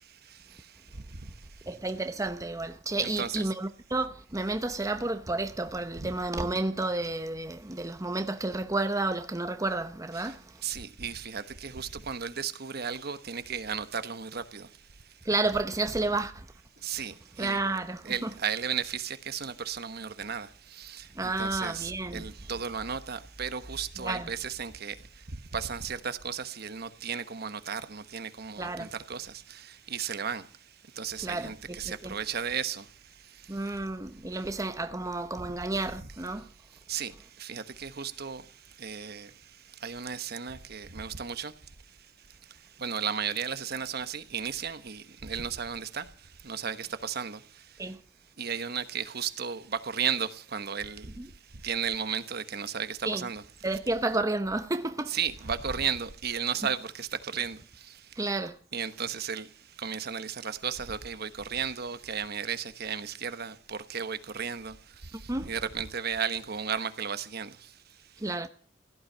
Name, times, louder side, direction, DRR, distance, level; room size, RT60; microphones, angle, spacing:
voice 1, 1.7-10.6 15.2-16.5 17.4-18.3 21.1-22.2 24.0-24.3 28.6-28.9 31.2-31.5 31.9-32.1 33.5-36.5 47.8-48.0 51.2-51.3 53.1-53.3 53.6-55.2 58.2-58.6 65.3-65.5 68.2-68.5, right 2 dB, 15° right, 0.8 m, -31 dB
voice 2, 3.0-3.5 6.0-6.1 10.1-10.3 10.6-14.7 16.8-17.6 18.0-25.0 25.5-30.4 31.0-32.8 36.9-37.1 37.4-38.4 38.8-39.3 39.8-41.5 42.8-46.1 46.4-47.4 48.4-51.1 51.6-53.4 55.1-57.6 58.7-59.5 59.8-64.7 65.4-67.5, right 7 dB, 55° right, 1.1 m, -34 dB
16.5 x 12.0 x 6.7 m
head